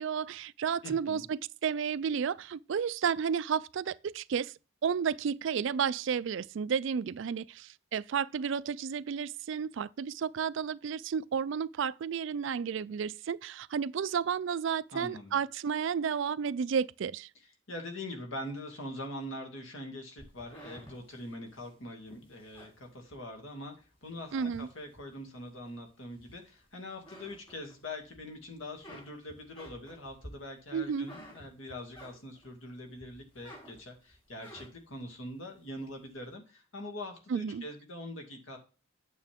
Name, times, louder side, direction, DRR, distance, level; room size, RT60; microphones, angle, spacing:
voice 1, 0.0-4.5 4.8-17.3 24.3-24.7 30.7-31.1 37.3-37.6, right 7 dB, 60° right, 0.3 m, -32 dB
voice 2, 0.8-1.2 14.9-15.4 17.7-38.6, left 1 dB, 65° left, 2.3 m, -43 dB
sound 1, 20.2-23.6 24.0-25.1 25.6-26.6 26.9-28.2 28.5-32.6 33.0-35.0, equal, 25° left, 4.1 m, -52 dB
8.9 x 6.7 x 3.6 m
head